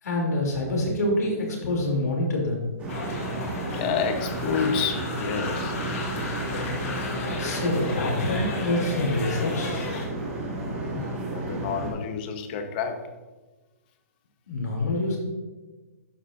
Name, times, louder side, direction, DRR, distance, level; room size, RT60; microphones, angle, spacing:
voice 1, 0.0-2.7 7.4-9.8 14.5-15.2, left 1 dB, 90° left, -1 dB, 2.8 m, -26 dB
sound 1, 2.8-11.9, right 2 dB, 15° right, 1.9 m, -32 dB
sound 2, 2.9-10.0, left 3 dB, 55° left, 2.1 m, -34 dB
voice 2, 3.7-5.7 10.6-13.1, left 6 dB, 35° left, 7 dB, 0.9 m, -29 dB
11.5 x 7.3 x 2.5 m, 1.2 s
hypercardioid pair, 155°, 9 cm